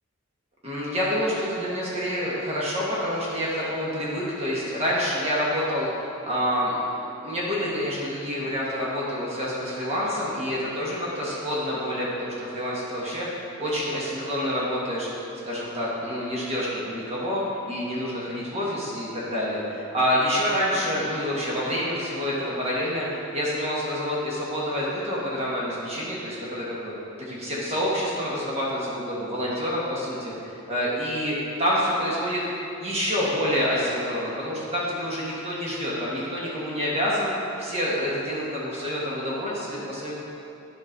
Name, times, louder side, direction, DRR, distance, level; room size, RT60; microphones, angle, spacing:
voice 1, 0.6-6.8 7.2-15.1 15.4-26.9 27.2-30.3 30.7-32.4 32.8-37.3 37.6-40.1, equal, 30° right, -6 dB, 1.4 m, -27 dB
10.0 x 5.3 x 4.0 m, 2.7 s
head